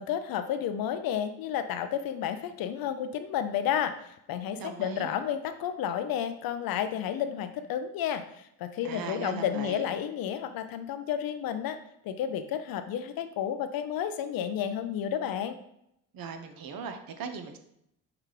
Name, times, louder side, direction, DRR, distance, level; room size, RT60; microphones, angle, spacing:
voice 1, 0.0-11.8 12.0-15.6, left 9 dB, 55° left, 10 dB, 0.5 m, -31 dB
voice 2, 4.6-5.1 8.8-9.8 16.1-17.6, right 6 dB, 50° right, 8 dB, 0.7 m, -38 dB
5.8 x 2.3 x 3.2 m, 0.77 s
supercardioid pair, 60°, 45 cm